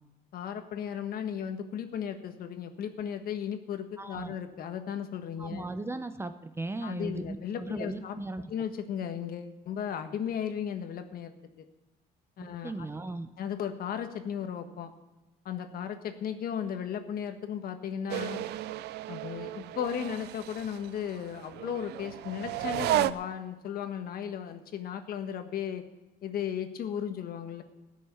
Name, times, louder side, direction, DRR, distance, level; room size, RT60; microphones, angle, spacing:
voice 1, 0.3-5.7 6.8-8.2 8.5-11.6 12.4-12.9 13.4-14.9 15.4-18.4 19.1-25.8 26.2-27.6, left 8 dB, 60° left, 8 dB, 1.5 m, -35 dB
voice 2, 4.0-4.3 5.4-8.4 12.4-13.3, right 2 dB, 15° right, 10 dB, 0.8 m, -37 dB
sound 1, 18.1-23.1, right 14 dB, 75° right, 0.5 m, -33 dB
14.5 x 6.5 x 9.6 m, 1.1 s
cardioid pair, 110°, 17 cm